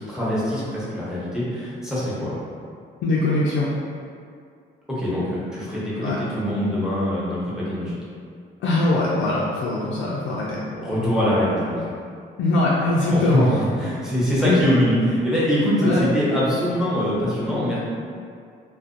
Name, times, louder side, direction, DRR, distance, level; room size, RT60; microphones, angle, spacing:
voice 1, 0.1-2.3 4.9-8.0 10.7-11.9 13.1-17.8, equal, 5° right, -9 dB, 0.9 m, -23 dB
voice 2, 3.0-3.7 6.0-6.2 8.6-10.6 12.4-13.5 14.4-14.6 15.8-16.0, left 2 dB, 75° left, -6 dB, 0.4 m, -21 dB
2.5 x 2.2 x 2.5 m, 2.3 s
cardioid pair, 90°, 20 cm